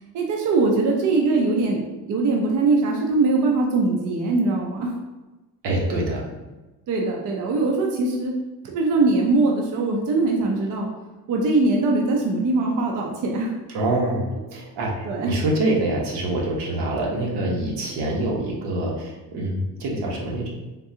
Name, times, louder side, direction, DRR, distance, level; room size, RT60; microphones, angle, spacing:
voice 1, 0.1-4.9 6.9-8.3 8.6-10.9 11.3-13.5 15.0-15.3, right 3 dB, 50° right, 0 dB, 0.5 m, -21 dB
voice 2, 5.6-6.2 13.7-20.5, right 1 dB, 85° right, -2 dB, 0.9 m, -25 dB
3.6 x 2.2 x 2.7 m, 1.1 s
cardioid pair, 125°, 40 cm